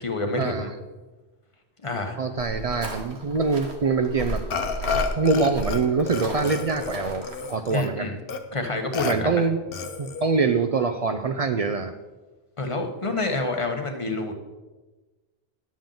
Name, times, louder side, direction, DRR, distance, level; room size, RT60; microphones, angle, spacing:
voice 1, 0.0-0.7 1.8-2.2 7.7-8.2 8.5-9.4 12.6-14.3, left 2 dB, 30° left, 5 dB, 0.9 m, -28 dB
voice 2, 2.2-4.4 5.2-8.1 9.0-9.6 10.0-11.9, right 4 dB, 60° right, 8 dB, 0.4 m, -24 dB
sound 1, 2.4-7.6, equal, 75° right, 1.5 m, -34 dB
Burping eructation, 4.5-5.8 6.1-7.9 8.3-8.4 8.9-9.1 9.7-10.3, left 5 dB, 65° left, 0.9 m, -30 dB
10.5 x 7.2 x 3.8 m, 1.2 s
omnidirectional pair, 1.1 m